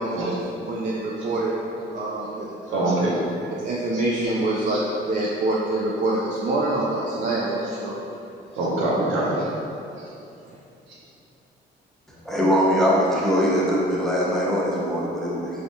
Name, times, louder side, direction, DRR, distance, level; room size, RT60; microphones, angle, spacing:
voice 1, 0.6-1.6 1.9-2.5 3.5-8.0, right 2 dB, 40° right, -5 dB, 0.4 m, -25 dB
voice 2, 2.7-3.2 3.9-4.0 4.7-4.8 8.5-9.5 10.9-11.0, right 1 dB, 90° right, -5 dB, 0.7 m, -24 dB
voice 3, 12.2-15.5, equal, ahead, -6 dB, 0.6 m, -21 dB
3.4 x 2.4 x 2.7 m, 2.8 s
cardioid pair, 90°, 20 cm